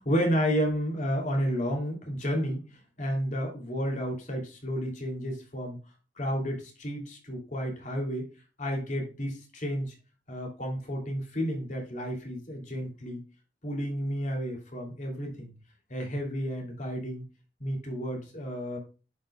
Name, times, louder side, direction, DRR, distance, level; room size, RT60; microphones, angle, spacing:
voice 1, 0.0-2.6 3.0-5.8 6.2-8.3 8.6-9.9 10.3-13.2 13.6-15.5 15.9-17.3 17.6-18.8, equal, 45° left, 0 dB, 3.0 m, -31 dB
11.5 x 5.5 x 2.3 m, 0.33 s
head